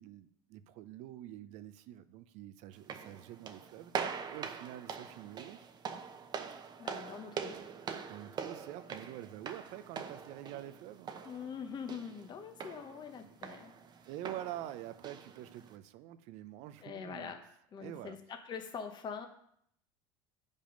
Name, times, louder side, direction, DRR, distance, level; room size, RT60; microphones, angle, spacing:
voice 1, 0.0-5.6 8.1-11.1 13.2-13.4 14.0-17.3 17.8-18.2, right 13 dB, 60° right, 13 dB, 0.6 m, -46 dB
sound 1, 2.7-15.8, right 6 dB, 35° right, 0.9 m, -44 dB
voice 2, 6.8-7.6 11.2-13.7 16.8-17.4 17.7-19.3, left 6 dB, 35° left, 5 dB, 1.0 m, -43 dB
8.5 x 5.3 x 5.2 m, 0.71 s
supercardioid pair, 95°, 13 cm